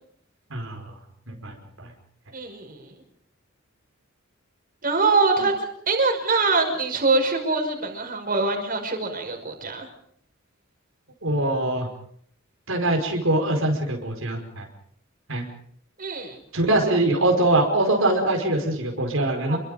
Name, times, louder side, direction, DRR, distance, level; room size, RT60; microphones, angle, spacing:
voice 1, 0.5-0.9 1.3-1.9 11.2-11.9 12.7-14.7 15.3-15.4 16.5-19.6, right 2 dB, 80° right, 2 dB, 5.2 m, -23 dB
voice 2, 2.3-2.9 4.8-9.9 16.0-16.4 19.5-19.6, right 3 dB, 45° right, 3 dB, 5.9 m, -24 dB
28.5 x 23.5 x 5.2 m, 0.66 s
head